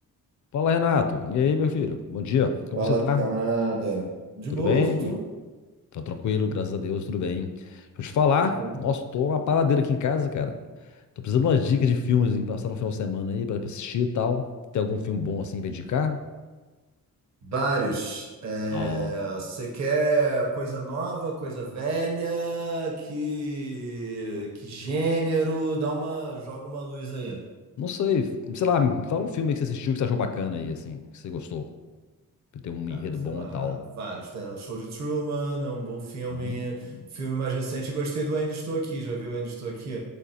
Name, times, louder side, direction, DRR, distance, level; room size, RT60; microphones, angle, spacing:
voice 1, 0.5-3.2 4.5-5.1 5.9-10.5 11.2-14.5 14.7-16.2 18.7-19.1 27.8-31.6 32.5-33.8 36.3-37.0, left 6 dB, 55° left, 7 dB, 0.4 m, -26 dB
voice 2, 2.8-4.1 4.4-5.2 8.5-8.8 17.4-27.4 32.9-40.0, right 3 dB, 50° right, -1 dB, 0.9 m, -29 dB
6.4 x 2.4 x 2.8 m, 1.3 s
cardioid pair, 85°, 34 cm